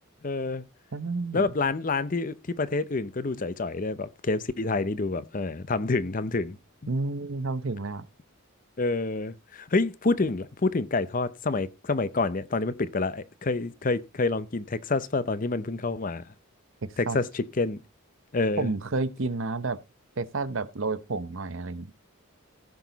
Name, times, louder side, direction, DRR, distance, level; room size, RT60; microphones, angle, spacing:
voice 1, 0.2-0.6 1.3-6.6 8.8-16.2 17.0-17.8 18.3-18.7, left 3 dB, 40° left, 0.6 m, -28 dB
voice 2, 0.9-1.5 6.9-8.0 17.1-17.2 18.6-19.8 20.2-21.9, right 3 dB, 60° right, 0.7 m, -30 dB
15.5 x 6.1 x 4.0 m
head